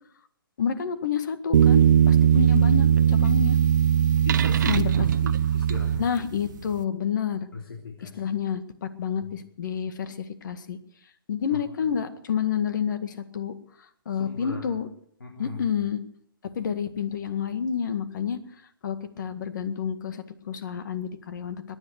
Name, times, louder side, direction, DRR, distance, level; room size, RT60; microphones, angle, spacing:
voice 1, 0.6-3.6 4.7-4.9 6.0-7.5 8.0-10.8 11.3-13.5 14.1-14.9 15.4-16.0 16.5-18.4 18.8-21.6, left 7 dB, 55° left, 10 dB, 1.8 m, -29 dB
sound 1, 1.5-6.5, right 9 dB, 55° right, 0.8 m, -19 dB
voice 2, 4.2-4.8 5.2-6.1 7.5-8.4 9.2-9.3 11.5-11.6 14.1-14.6 15.2-15.8, left 3 dB, 75° left, 0 dB, 3.5 m, -37 dB
22.5 x 9.9 x 6.6 m, 0.67 s
figure-of-eight pair, 135°, 12 cm